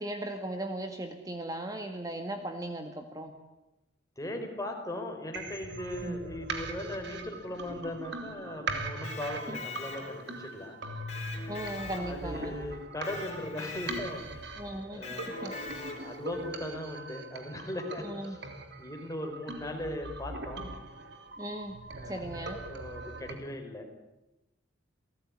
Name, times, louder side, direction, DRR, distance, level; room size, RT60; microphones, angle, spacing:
voice 1, 0.0-3.3 6.0-6.2 9.5-9.6 11.5-12.6 14.6-15.5 18.0-18.4 21.4-21.7 22.0-22.6, right 1 dB, 20° right, 5 dB, 1.8 m, -37 dB
voice 2, 4.2-10.8 11.6-14.5 14.9-18.5 18.8-20.6 22.0-23.9, left 1 dB, 15° left, 3 dB, 4.5 m, -39 dB
sound 1, 5.3-23.3, right 2 dB, 60° right, 3.3 m, -41 dB
Electric guitar, 8.9-10.4 11.1-12.5 13.0-14.3 15.0-16.3, left 4 dB, 35° left, 5.1 m, -42 dB
29.0 x 19.0 x 9.9 m, 0.98 s
head